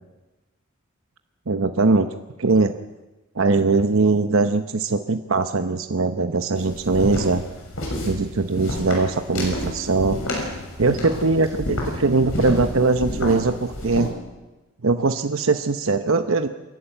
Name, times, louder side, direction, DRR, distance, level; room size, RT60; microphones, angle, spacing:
voice 1, 1.5-2.1 2.4-2.8 3.3-7.4 8.0-10.2 10.8-14.1 14.8-16.5, right 3 dB, 65° right, 8 dB, 0.9 m, -21 dB
sound 1, 6.6-14.1, left 1 dB, 70° left, 6.5 m, -30 dB
28.0 x 11.5 x 9.0 m, 1.1 s
head